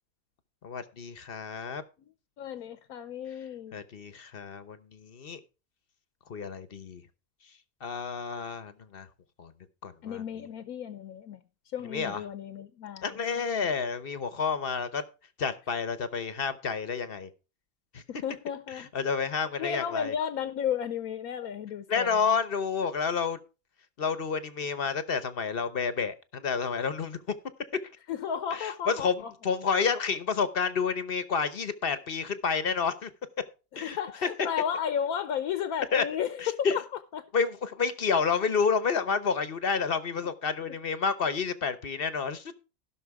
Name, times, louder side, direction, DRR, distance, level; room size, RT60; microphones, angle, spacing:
voice 1, 0.6-1.8 3.7-5.4 6.3-7.0 7.8-9.1 9.4-9.5 9.8-10.2 11.8-12.2 13.0-15.0 15.4-17.3 17.9-18.0 18.7-20.1 21.9-23.4 24.0-27.2 28.5-33.1 33.8-34.3 35.9-36.0 36.4-36.8 37.3-42.5, left 5 dB, 45° left, 1.0 m, -30 dB
voice 2, 2.4-3.8 10.0-11.4 11.7-13.1 13.4-13.7 18.1-18.9 19.6-22.2 28.1-29.3 33.7-36.4 36.7-36.8 37.1-37.3 40.2-40.3 40.7-40.8, left 8 dB, 75° left, 1.2 m, -33 dB
15.5 x 6.2 x 4.7 m
omnidirectional pair, 1.5 m